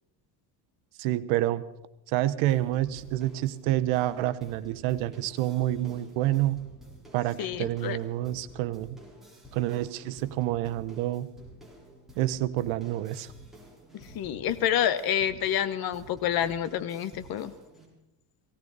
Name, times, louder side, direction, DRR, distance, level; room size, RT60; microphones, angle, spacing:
voice 1, 1.0-1.6 2.1-6.6 7.1-9.0 9.5-11.3 12.2-13.3, right 14 dB, 80° right, 14 dB, 1.0 m, -28 dB
sound 1, 2.5-17.8, right 1 dB, ahead, 4.0 m, -51 dB
voice 2, 7.4-8.0 13.9-17.5, left 10 dB, 50° left, 14 dB, 1.1 m, -28 dB
18.0 x 17.0 x 4.0 m, 0.92 s
cardioid pair, 140°, 48 cm